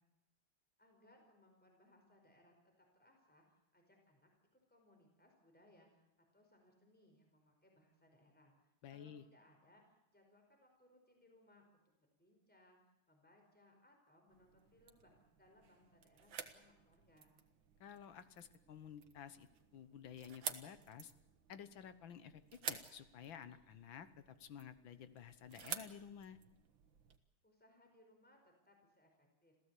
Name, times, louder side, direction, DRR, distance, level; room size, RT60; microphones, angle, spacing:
voice 1, 0.8-6.1 6.3-11.7 12.0-17.4 27.4-29.6, left 1 dB, 5° left, 2 dB, 4.9 m, -69 dB
voice 2, 8.8-9.2 17.8-19.5 19.7-21.1 21.5-26.4, left 8 dB, 65° left, 12 dB, 1.8 m, -53 dB
sound 1, 14.3-27.2, right 7 dB, 65° right, 2.1 m, -51 dB
27.0 x 16.0 x 8.4 m, 0.91 s
omnidirectional pair, 2.3 m